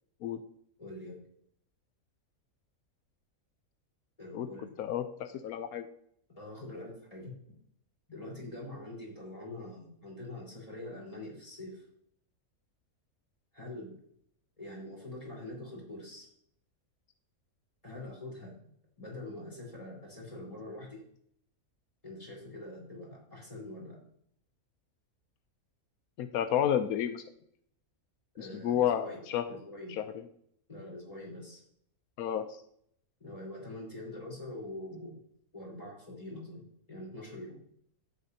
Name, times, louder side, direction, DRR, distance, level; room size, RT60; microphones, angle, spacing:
voice 1, 0.8-1.2 4.2-4.7 6.4-7.3 8.1-11.8 13.5-13.9 14.6-16.3 17.8-18.7 19.0-21.0 22.0-24.0 28.4-29.2 29.5-30.0 30.7-31.6 33.2-35.2 35.5-37.6, left 1 dB, 25° left, -4 dB, 4.3 m, -44 dB
voice 2, 4.8-5.9 26.2-27.2 28.4-29.5 29.9-30.0 32.2-32.6, left 10 dB, 85° left, 10 dB, 1.1 m, -31 dB
11.5 x 9.3 x 2.8 m, 0.68 s
omnidirectional pair, 1.5 m